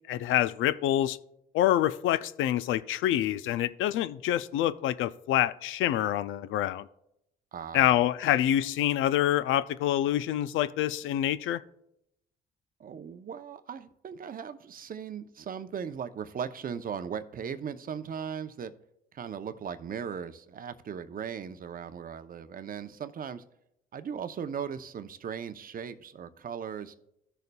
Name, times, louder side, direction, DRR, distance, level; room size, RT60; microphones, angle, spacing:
voice 1, 0.1-1.2 1.5-6.9 7.7-11.6, left 12 dB, 85° left, 0.4 m, -26 dB
voice 2, 7.5-8.4 12.8-18.7 19.1-23.4 23.9-27.0, right 7 dB, 45° right, 0.6 m, -38 dB
16.0 x 6.7 x 2.3 m
cardioid pair, 90°, 20 cm